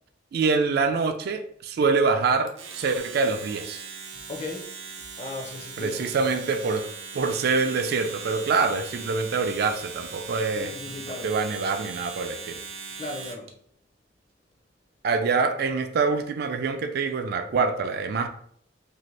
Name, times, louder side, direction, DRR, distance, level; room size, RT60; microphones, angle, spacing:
voice 1, 0.3-3.8 5.8-6.9 7.1-10.7 11.0-12.6 15.0-18.3, right 4 dB, 55° right, 7 dB, 0.3 m, -25 dB
Domestic sounds home sounds, 2.5-13.5, right 5 dB, 90° right, 0.6 m, -40 dB
voice 2, 4.3-4.7 5.2-6.0 10.5-11.3 13.0-13.5, left 3 dB, 35° left, 2 dB, 0.5 m, -36 dB
2.8 x 2.6 x 3.2 m, 0.65 s
head